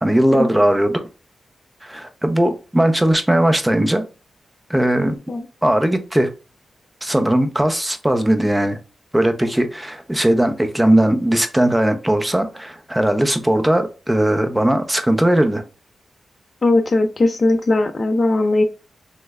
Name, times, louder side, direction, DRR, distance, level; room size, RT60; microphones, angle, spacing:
voice 1, 0.0-1.0 1.8-4.0 4.7-5.2 5.6-6.3 7.0-8.8 9.1-15.6, right 1 dB, 10° right, 0.5 m, -18 dB
voice 2, 16.6-18.6, left 2 dB, 40° left, 0.4 m, -18 dB
3.2 x 3.1 x 2.3 m
cardioid pair, 90°, 0 cm